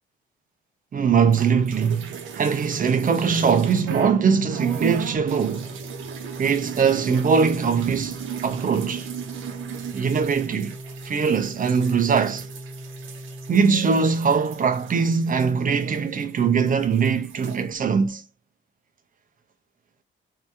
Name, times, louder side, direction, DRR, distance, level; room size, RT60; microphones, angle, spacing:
voice 1, 0.9-5.7 6.4-9.1 9.9-10.8 11.0-12.5 13.5-18.2, right 6 dB, 45° right, 0.8 m, -21 dB
sound 1, 1.3-4.2 4.5-16.4 16.7-17.6, right 9 dB, 80° right, 0.9 m, -36 dB
Organ, 3.4-14.3, right 1 dB, 5° right, 1.2 m, -40 dB
3.1 x 2.8 x 3.3 m
cardioid pair, 90°, 20 cm